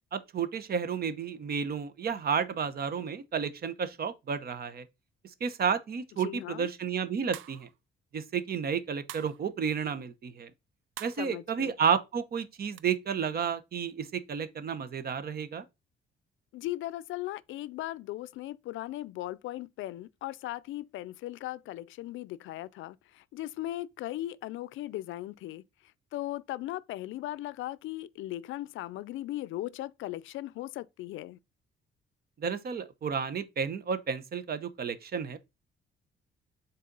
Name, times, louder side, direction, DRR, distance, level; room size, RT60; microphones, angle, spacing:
voice 1, 0.1-4.8 5.4-7.7 8.1-10.5 11.0-15.6 32.4-35.4, right 6 dB, 50° right, 0.9 m, -31 dB
voice 2, 6.2-6.7 11.2-11.7 16.5-25.6 26.1-31.4, left 15 dB, 80° left, 0.4 m, -38 dB
sound 1, 7.3-7.8 9.1-9.4 11.0-11.3 12.8-12.9, right 13 dB, 85° right, 0.5 m, -44 dB
6.4 x 4.2 x 3.9 m
cardioid pair, 90°, 20 cm